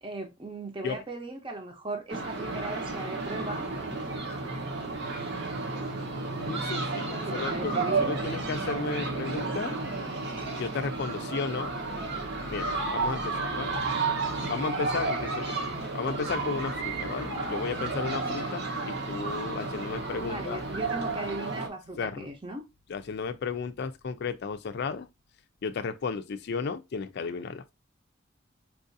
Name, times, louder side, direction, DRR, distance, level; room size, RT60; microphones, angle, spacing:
voice 1, 0.0-3.7 7.2-8.2 20.2-22.6, right 2 dB, 25° right, 0.7 m, -37 dB
sound 1, 2.1-21.7, right 3 dB, 60° right, 1.0 m, -32 dB
voice 2, 6.4-7.7 8.0-9.8 10.6-11.8 12.5-13.8 14.5-15.6 15.9-20.6 22.0-22.3 22.9-25.1 25.6-27.6, left 5 dB, 60° left, 0.4 m, -34 dB
4.6 x 2.5 x 2.6 m
head